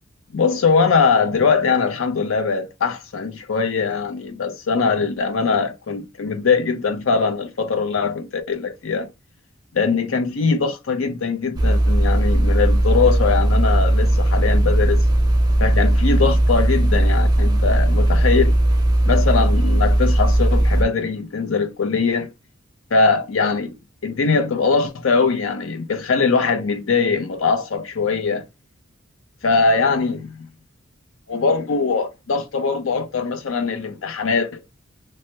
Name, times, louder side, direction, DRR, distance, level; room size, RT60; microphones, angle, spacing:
voice 1, 0.3-9.1 9.7-15.0 15.6-18.6 19.0-22.3 22.9-23.7 24.0-28.5 29.4-30.5 31.3-34.6, left 4 dB, 80° left, 0.6 m, -21 dB
sound 1, 11.6-20.8, right 1 dB, 20° right, 0.5 m, -17 dB
3.3 x 2.1 x 2.8 m
head